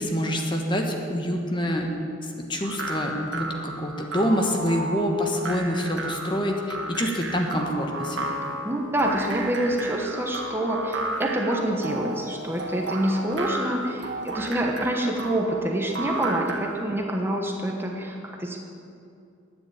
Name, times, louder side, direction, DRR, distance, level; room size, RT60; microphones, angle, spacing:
voice 1, 0.0-1.9 2.2-8.4, equal, 25° left, 2 dB, 1.3 m, -26 dB
sound 1, 2.6-16.8, right 2 dB, 70° right, 1.6 m, -33 dB
voice 2, 8.6-18.6, right 1 dB, 10° right, 1 dB, 1.1 m, -26 dB
11.5 x 9.5 x 8.6 m, 2.6 s
head